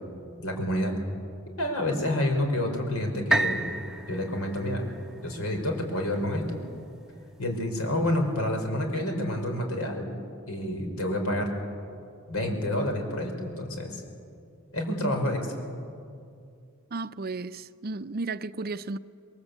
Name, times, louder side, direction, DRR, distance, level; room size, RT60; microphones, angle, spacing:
voice 1, 0.4-0.9 1.6-3.7 4.1-4.9 5.2-6.6 7.4-10.1 10.5-11.5 12.3-14.0 14.7-15.4, left 1 dB, 75° left, 5.2 m, -28 dB
sound 1, 3.3-7.2 7.8-7.9, right 2 dB, 5° right, 0.9 m, -32 dB
voice 2, 16.9-19.0, right 3 dB, 45° right, 0.6 m, -34 dB
28.0 x 22.5 x 8.4 m
head